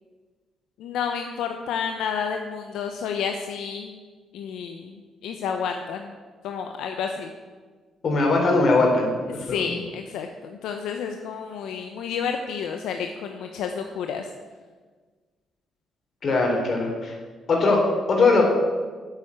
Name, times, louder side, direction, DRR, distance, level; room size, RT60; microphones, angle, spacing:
voice 1, 0.8-4.0 4.3-6.1 6.4-7.3 9.4-14.3, left 6 dB, 85° left, 5 dB, 0.8 m, -30 dB
voice 2, 8.0-9.8 16.2-17.1 17.5-18.4, left 3 dB, 50° left, 1 dB, 3.8 m, -21 dB
9.9 x 7.8 x 8.6 m, 1.4 s
cardioid pair, 90°, 0 cm